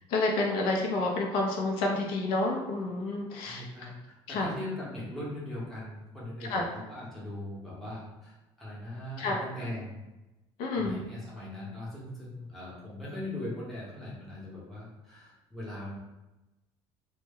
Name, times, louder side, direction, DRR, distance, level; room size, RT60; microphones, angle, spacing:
voice 1, 0.1-3.6 4.3-4.5 6.5-6.7 9.2-9.4 10.6-11.0, left 2 dB, 75° left, 0 dB, 0.5 m, -29 dB
voice 2, 3.4-10.0 10.7-16.0, left 1 dB, ahead, -8 dB, 0.7 m, -40 dB
2.1 x 2.1 x 3.4 m, 1.0 s
cardioid pair, 170°, 10 cm